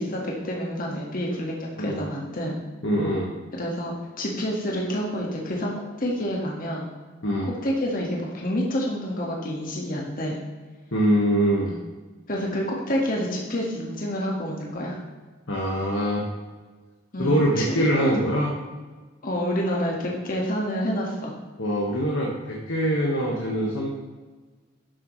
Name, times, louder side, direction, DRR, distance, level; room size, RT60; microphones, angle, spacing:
voice 1, 0.0-2.6 3.5-6.9 7.5-10.4 11.6-11.8 12.3-15.0 17.1-18.1 19.2-21.4, equal, 45° left, -2 dB, 1.7 m, -28 dB
voice 2, 2.8-3.3 7.2-7.5 10.9-11.7 15.5-16.3 17.2-18.5 21.6-23.9, equal, 75° left, -3 dB, 1.5 m, -23 dB
12.0 x 7.6 x 3.2 m, 1.3 s
head